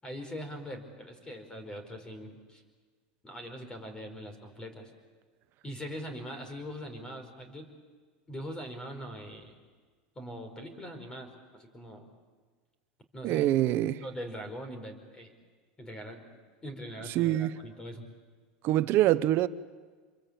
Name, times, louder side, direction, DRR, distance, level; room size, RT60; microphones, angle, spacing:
voice 1, 0.0-2.6 3.2-4.9 5.6-7.7 8.3-9.5 10.1-12.1 13.1-13.5 14.0-15.3 15.8-16.2 16.6-18.1, equal, 15° left, 4.9 m, -42 dB
voice 2, 13.2-14.0 17.1-17.5 18.6-19.5, right 14 dB, 50° right, 1.0 m, -25 dB
27.5 x 23.0 x 8.8 m
supercardioid pair, 125°, 5 cm